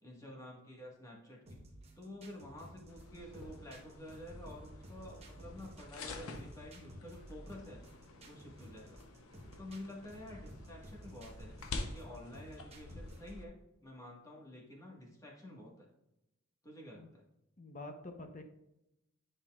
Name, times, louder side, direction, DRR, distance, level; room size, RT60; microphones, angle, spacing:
voice 1, 0.0-1.6 2.0-7.8 8.2-9.0 9.6-15.9 16.6-17.3, left 1 dB, 15° left, -3 dB, 1.4 m, -50 dB
sound 1, 1.5-13.5, equal, 30° right, 1.0 m, -54 dB
sound 2, 2.9-13.4, left 2 dB, 90° left, 0.8 m, -49 dB
voice 2, 17.6-18.4, left 2 dB, 35° left, 6 dB, 0.7 m, -47 dB
9.5 x 5.3 x 2.3 m, 0.90 s
head